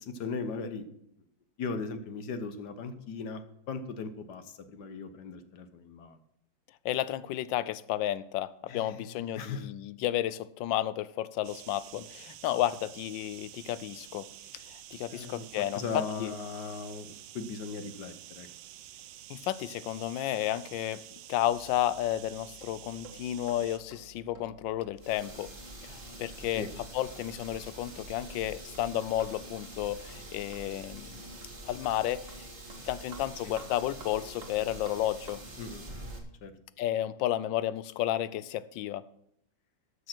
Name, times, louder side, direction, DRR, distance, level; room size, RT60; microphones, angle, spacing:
voice 1, 0.0-0.9 1.6-6.2 8.7-9.7 15.1-15.5 15.7-18.5 26.5-26.7 33.4-33.5 35.6-36.0 36.4-36.5, left 4 dB, 65° left, 1.5 m, -38 dB
voice 2, 6.8-14.3 14.7-16.3 19.3-21.0 21.3-25.5 25.8-26.7 26.9-31.2 31.7-32.2 32.8-35.4 36.8-39.1, left 13 dB, 80° left, 1.3 m, -32 dB
sound 1, 11.4-23.8, right 12 dB, 75° right, 1.3 m, -49 dB
sound 2, 21.4-35.6, right 2 dB, 45° right, 1.9 m, -54 dB
sound 3, 25.0-36.2, right 1 dB, 30° right, 1.9 m, -46 dB
12.5 x 6.5 x 6.0 m
omnidirectional pair, 2.0 m